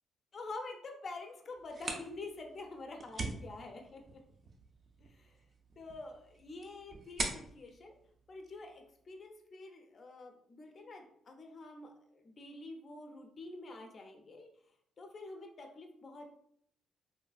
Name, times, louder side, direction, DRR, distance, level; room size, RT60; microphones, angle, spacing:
voice 1, 0.3-4.2 5.0-5.3 5.8-7.9 8.3-14.5 15.0-16.4, left 2 dB, 40° left, 3 dB, 0.5 m, -47 dB
sound 1, 1.5-9.1, right 2 dB, 40° right, 0.5 m, -44 dB
3.1 x 2.4 x 2.3 m, 0.68 s
cardioid pair, 105°, 0 cm